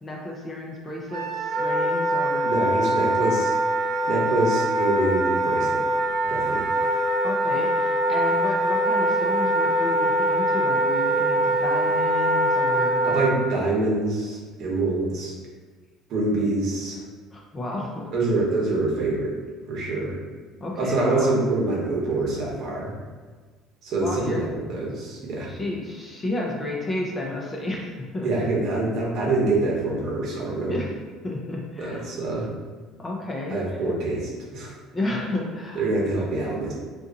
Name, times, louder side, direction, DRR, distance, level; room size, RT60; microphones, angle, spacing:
voice 1, 0.0-2.5 7.2-13.0 17.3-18.1 20.6-21.4 24.0-24.4 25.5-28.5 30.7-30.9 31.2-32.1 33.0-33.8 34.9-35.8, left 2 dB, 20° left, -2 dB, 0.5 m, -32 dB
Wind instrument woodwind instrument, 1.1-13.3, right 1 dB, 85° right, 0.6 m, -23 dB
voice 2, 2.4-3.5 4.1-5.8 6.2-6.7 13.0-15.3 16.1-17.0 18.1-19.4 19.7-20.2 20.8-22.9 23.8-25.5 28.2-30.8 31.8-32.5 33.5-34.7 35.7-36.7, right 2 dB, 55° right, -4 dB, 0.9 m, -25 dB
2.7 x 2.5 x 3.8 m, 1.4 s
cardioid pair, 140°, 0 cm